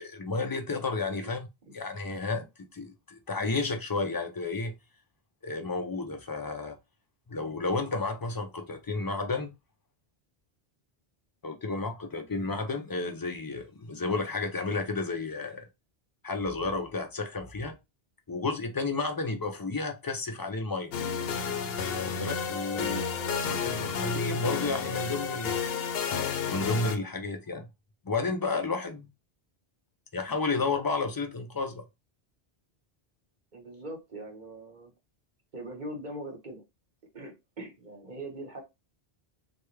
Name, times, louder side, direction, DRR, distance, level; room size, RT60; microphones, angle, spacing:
voice 1, 0.0-1.5 1.7-4.8 5.4-6.8 7.3-9.5 11.4-15.7 16.2-17.7 18.3-20.9 22.0-23.0 23.5-25.6 26.5-27.7 28.0-29.1 30.1-31.8, left 3 dB, 35° left, 0.3 m, -32 dB
voice 2, 1.0-1.3 1.7-1.8 22.7-23.8 33.5-34.9 35.5-36.6 37.1-38.6, right 1 dB, 50° right, 1.1 m, -42 dB
sound 1, 20.9-27.0, left 6 dB, 70° left, 0.8 m, -31 dB
3.3 x 2.3 x 3.1 m
omnidirectional pair, 1.1 m